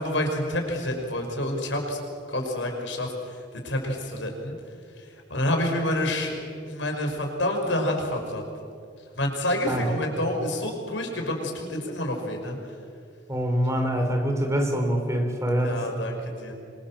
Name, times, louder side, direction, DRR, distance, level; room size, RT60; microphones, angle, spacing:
voice 1, 0.0-2.0 2.3-3.4 3.6-4.5 5.0-5.1 5.3-6.3 6.6-8.4 9.2-12.6 15.6-16.5, left 1 dB, 90° left, 2 dB, 5.8 m, -28 dB
voice 2, 13.3-15.9, equal, 15° right, 3 dB, 4.1 m, -25 dB
26.0 x 26.0 x 7.6 m, 2.3 s
head